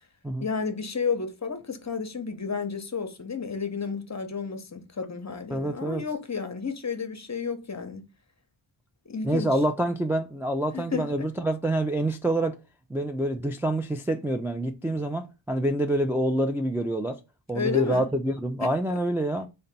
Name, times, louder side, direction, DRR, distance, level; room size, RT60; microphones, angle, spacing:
voice 1, 0.4-8.0 9.1-9.5 10.7-11.1 17.5-18.0, left 5 dB, 35° left, 0.7 m, -31 dB
voice 2, 5.5-6.0 9.2-12.6 12.9-17.2 17.5-19.5, right 1 dB, 5° right, 0.3 m, -27 dB
3.9 x 2.2 x 3.9 m
wide cardioid pair, 75°, 46 cm